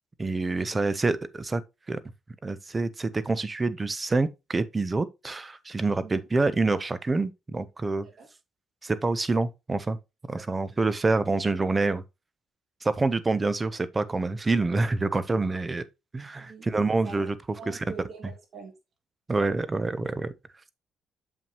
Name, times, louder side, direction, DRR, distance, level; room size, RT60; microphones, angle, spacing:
voice 1, 0.2-1.6 1.9-2.0 2.4-8.1 8.8-10.0 10.3-12.0 12.8-15.8 16.1-17.4 17.7-17.8 19.3-20.3, right 3 dB, 25° right, 0.7 m, -27 dB
voice 2, 16.4-17.2 17.6-18.7, right 4 dB, 55° right, 2.4 m, -44 dB
7.0 x 5.6 x 2.9 m
cardioid pair, 90°, 0 cm